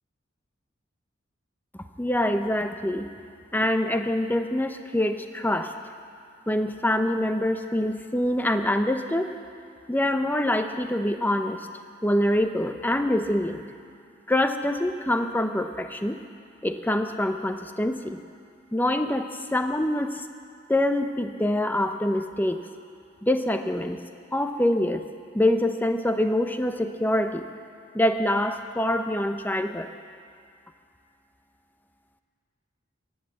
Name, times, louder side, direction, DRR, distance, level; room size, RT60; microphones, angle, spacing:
voice 1, 1.7-3.1 3.5-5.7 6.5-9.3 9.9-11.7 12.0-13.6 14.3-16.2 16.6-18.2 18.7-20.3 20.7-22.6 23.2-24.0 24.3-25.0 25.3-27.4 27.9-29.9, left 1 dB, 10° left, 7 dB, 0.6 m, -25 dB
16.0 x 10.5 x 7.6 m, 2.4 s
head